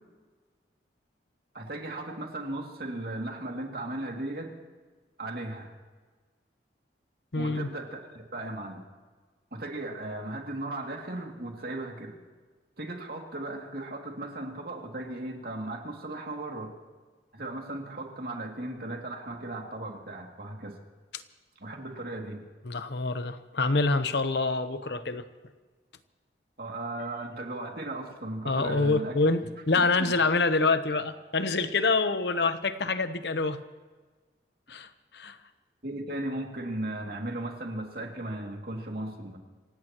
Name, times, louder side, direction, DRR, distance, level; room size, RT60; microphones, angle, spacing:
voice 1, 1.5-4.5 5.2-5.7 7.3-8.8 9.5-12.2 12.8-16.7 17.3-20.7 21.6-22.5 26.6-29.2 29.8-30.2 35.8-39.4, right 1 dB, 60° right, 1 dB, 2.5 m, -36 dB
voice 2, 7.3-7.7 22.6-25.3 28.4-33.6 34.7-35.4, left 3 dB, 70° left, 10 dB, 0.9 m, -26 dB
26.5 x 17.0 x 3.0 m, 1.4 s
head